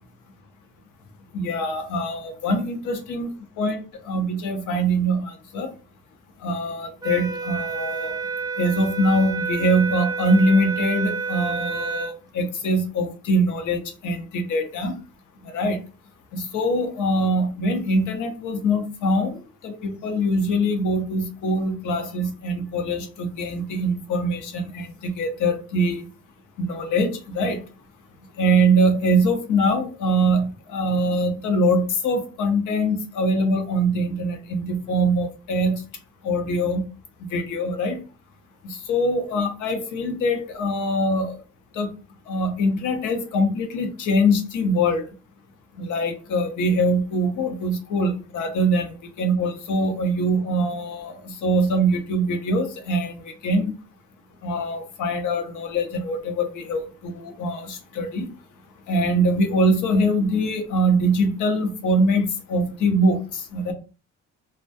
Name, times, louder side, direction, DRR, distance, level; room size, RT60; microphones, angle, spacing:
voice 1, 1.3-3.3 3.6-3.8 4.1-5.7 6.4-8.2 8.6-15.0 15.4-15.8 16.3-19.4 19.6-26.0 26.6-27.6 28.4-35.8 36.2-36.8 37.3-38.0 38.6-41.4 41.7-41.9 42.3-45.1 45.8-48.9 49.2-53.7 54.4-58.3 58.9-63.7, right 1 dB, 80° left, 6 dB, 0.7 m, -23 dB
sound 1, 7.0-12.2, right 5 dB, 15° right, 0.3 m, -29 dB
2.2 x 2.2 x 2.6 m, 0.35 s
cardioid pair, 90°, 30 cm